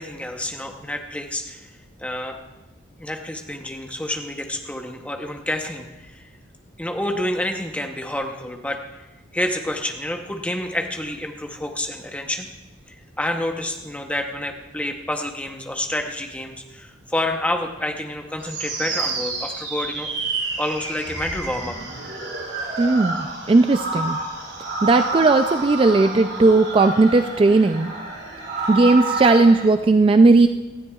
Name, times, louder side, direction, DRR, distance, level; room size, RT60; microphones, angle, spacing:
voice 1, 0.0-2.4 3.0-6.3 6.8-9.1 9.3-12.5 12.9-20.1 20.6-21.8, left 1 dB, 5° left, 4 dB, 0.8 m, -29 dB
sound 1, 18.4-29.7, right 3 dB, 65° right, 4.5 m, -29 dB
voice 2, 22.8-24.2 24.8-27.9 28.7-30.5, right 3 dB, 30° right, 8 dB, 0.3 m, -16 dB
18.0 x 13.0 x 2.4 m, 1.1 s
head